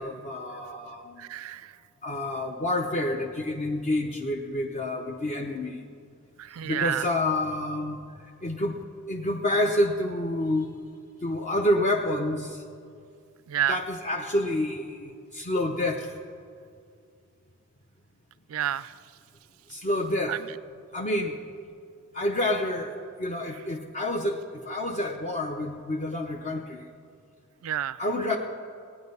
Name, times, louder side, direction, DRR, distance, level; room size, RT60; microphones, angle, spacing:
voice 1, 0.0-1.2 2.0-5.8 6.6-8.0 8.4-10.7 11.2-12.6 13.7-16.1 19.7-20.4 20.9-21.4 22.1-26.8 28.0-28.4, left 1 dB, 35° left, 2 dB, 0.7 m, -28 dB
voice 2, 1.2-1.7 6.4-7.1 13.5-13.8 18.5-18.9 20.3-20.4 27.6-28.0, right 11 dB, 85° right, 18 dB, 0.4 m, -29 dB
17.0 x 9.6 x 5.4 m, 2.3 s
head